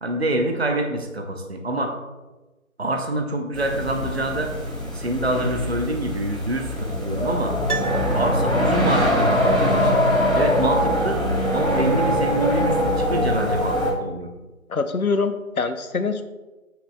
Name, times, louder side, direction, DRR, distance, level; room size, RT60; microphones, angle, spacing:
voice 1, 0.0-1.9 2.8-4.5 4.9-7.6 8.1-10.0 10.3-11.2 11.5-14.3, right 1 dB, 45° right, 4 dB, 0.7 m, -26 dB
sound 1, 3.5-13.9, equal, 5° right, 1.7 m, -22 dB
Piano, 7.7-8.9 9.2-9.3, right 5 dB, 90° right, 1.0 m, -33 dB
voice 2, 14.7-16.2, left 4 dB, 80° left, 9 dB, 0.8 m, -24 dB
8.1 x 5.9 x 2.2 m, 1.1 s
figure-of-eight pair, 170°, 43 cm